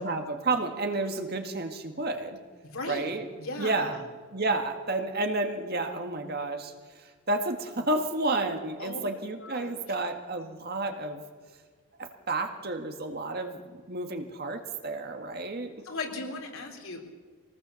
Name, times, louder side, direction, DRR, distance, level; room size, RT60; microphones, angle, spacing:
voice 1, 0.0-2.4 2.9-3.3 3.6-4.0 4.3-6.7 7.0-11.2 12.0-15.7, right 2 dB, 45° right, 5 dB, 1.8 m, -31 dB
voice 2, 2.6-3.1 3.4-4.0 8.8-9.0 9.4-9.8 15.8-17.0, left 2 dB, 65° left, 2 dB, 3.8 m, -37 dB
24.0 x 18.5 x 7.1 m, 1.5 s
head